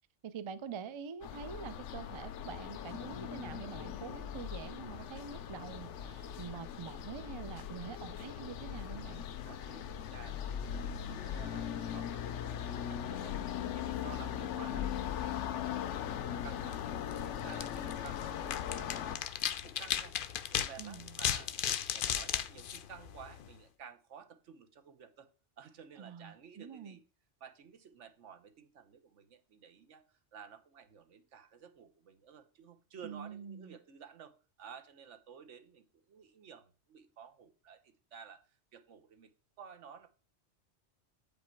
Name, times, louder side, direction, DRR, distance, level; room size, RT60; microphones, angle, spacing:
voice 1, 0.2-9.2 20.8-21.2 26.0-27.0 33.0-33.8, right 7 dB, 45° right, 13 dB, 0.4 m, -46 dB
sound 1, 1.2-19.2, left 9 dB, 85° left, 1.0 m, -39 dB
voice 2, 9.4-13.4 13.7-16.8 17.2-20.2 20.5-25.3 25.6-27.0 27.4-39.3 39.6-40.1, right 7 dB, 85° right, 8 dB, 1.3 m, -53 dB
sound 2, 16.6-23.6, left 9 dB, 60° left, 0.6 m, -37 dB
8.3 x 5.2 x 4.5 m, 0.35 s
omnidirectional pair, 1.2 m